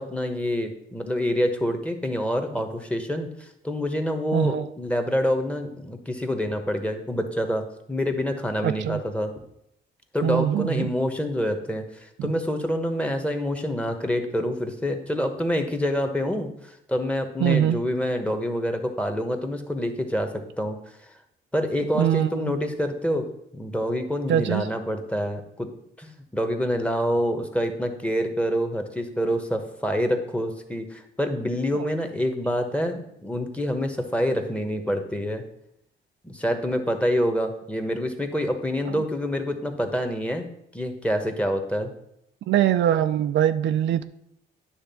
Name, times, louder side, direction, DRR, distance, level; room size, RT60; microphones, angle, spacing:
voice 1, 0.0-9.3 10.1-16.5 16.9-20.8 21.5-23.3 23.5-25.7 26.0-35.4 36.2-40.5 40.7-41.9, equal, 5° left, 5 dB, 1.2 m, -27 dB
voice 2, 4.3-4.7 8.6-9.0 10.2-10.9 12.2-12.3 17.4-17.8 21.9-22.5 24.3-24.7 31.7-31.8 38.9-39.0 42.5-44.0, right 10 dB, 70° right, 10 dB, 0.5 m, -23 dB
9.8 x 3.4 x 6.9 m, 0.76 s
cardioid pair, 90°, 20 cm